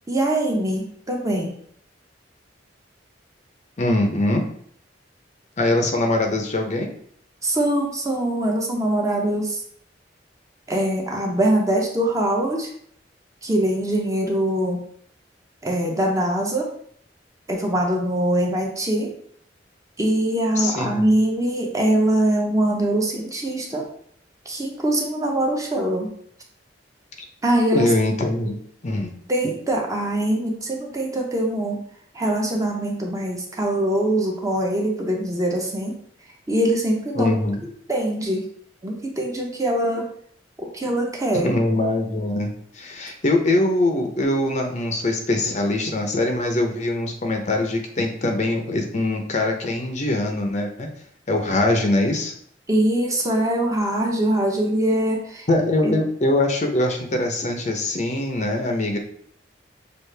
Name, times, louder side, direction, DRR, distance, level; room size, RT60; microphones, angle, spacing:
voice 1, 0.1-1.6 7.4-9.6 10.7-12.7 13.4-14.8 15.6-16.7 17.5-19.1 20.0-23.8 24.5-26.1 27.4-27.9 29.3-31.8 32.1-35.9 36.5-37.4 37.9-38.4 38.8-40.1 40.6-41.5 52.7-55.5 55.8-56.0, right 1 dB, 20° right, 0 dB, 0.8 m, -23 dB
voice 2, 3.8-4.4 5.6-6.9 20.6-21.1 27.7-28.6 28.8-29.1 37.1-37.6 41.4-50.9 51.3-52.3 55.5-59.0, left 2 dB, 40° left, 3 dB, 0.6 m, -22 dB
6.3 x 2.5 x 3.2 m, 0.62 s
head